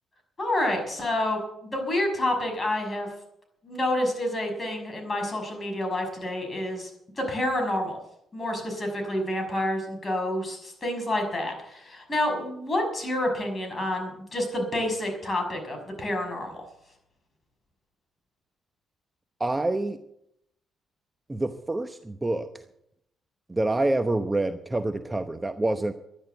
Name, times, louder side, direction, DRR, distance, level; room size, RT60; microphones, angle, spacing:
voice 1, 0.4-3.1 3.6-6.9 7.2-8.0 8.3-16.6, left 1 dB, 30° left, 3 dB, 6.0 m, -28 dB
voice 2, 19.4-20.0 21.3-22.5 23.5-25.9, right 2 dB, 15° right, 8 dB, 0.9 m, -27 dB
12.5 x 10.5 x 8.1 m, 0.78 s
cardioid pair, 90°, 0 cm